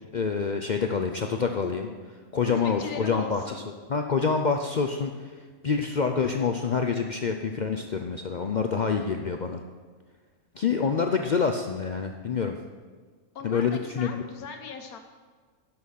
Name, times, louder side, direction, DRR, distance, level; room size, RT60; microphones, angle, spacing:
voice 1, 0.1-1.9 2.3-3.5 3.9-5.3 5.6-9.6 10.6-12.6 13.4-14.2, left 5 dB, 65° left, 4 dB, 0.4 m, -27 dB
voice 2, 2.5-3.6 11.0-11.1 13.3-15.0, left 6 dB, 80° left, 5 dB, 1.5 m, -39 dB
11.0 x 6.1 x 6.5 m, 1.5 s
omnidirectional pair, 1.5 m